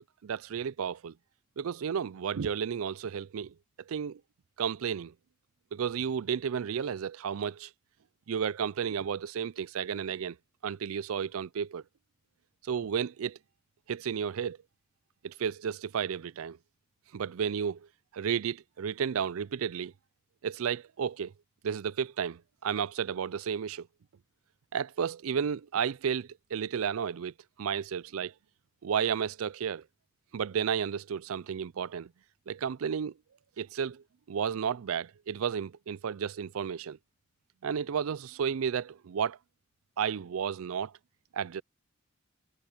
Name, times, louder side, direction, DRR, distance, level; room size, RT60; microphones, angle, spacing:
voice 1, 0.2-1.1 1.6-3.5 3.9-4.2 4.6-5.1 5.7-7.7 8.3-10.4 10.6-11.8 12.7-13.4 13.9-14.6 15.2-16.6 17.1-17.8 18.1-19.9 20.4-21.3 21.6-23.9 24.7-27.3 27.6-28.3 28.8-29.8 30.3-32.1 32.5-33.1 33.6-37.0 37.6-39.4 40.0-40.9 41.3-41.6, right 7 dB, 80° right, 0.4 m, -32 dB
head